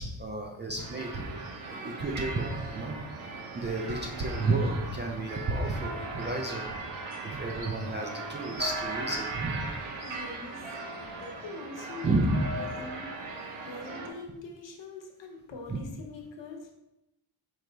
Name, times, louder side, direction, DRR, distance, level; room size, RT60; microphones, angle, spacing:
voice 1, 0.0-6.8 7.2-9.7 12.0-12.5 15.7-15.8, right 2 dB, 25° right, 0 dB, 0.3 m, -32 dB
sound 1, 0.8-14.1, right 3 dB, 75° right, 0.8 m, -38 dB
voice 2, 10.0-13.1 13.5-16.7, left 3 dB, 60° left, 2 dB, 0.9 m, -43 dB
4.7 x 2.1 x 3.8 m, 0.90 s
cardioid pair, 100°, 49 cm